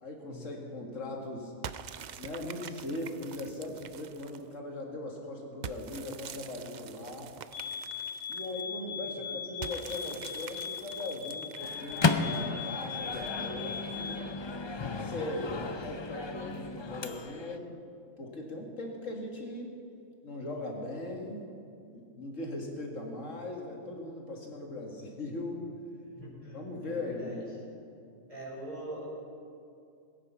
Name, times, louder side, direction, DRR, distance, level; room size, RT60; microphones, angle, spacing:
voice 1, 0.0-1.5 2.2-7.3 8.3-14.3 14.9-17.7 18.2-19.7 20.2-21.4 21.9-25.6 26.5-27.4 27.8-27.9, left 2 dB, 75° left, 0 dB, 2.4 m, -39 dB
sound 1, 1.6-4.5 5.6-8.6 9.6-12.3, right 8 dB, 70° right, 0.4 m, -45 dB
sound 2, 7.5-14.3, left 7 dB, 5° left, 4.5 m, -40 dB
Microwave oven, 11.6-17.6, left 4 dB, 40° left, 0.4 m, -34 dB
voice 2, 15.3-15.7 26.2-27.4 28.3-29.0, right 1 dB, 25° right, -6 dB, 4.8 m, -43 dB
21.0 x 9.1 x 5.7 m, 2.5 s
omnidirectional pair, 1.3 m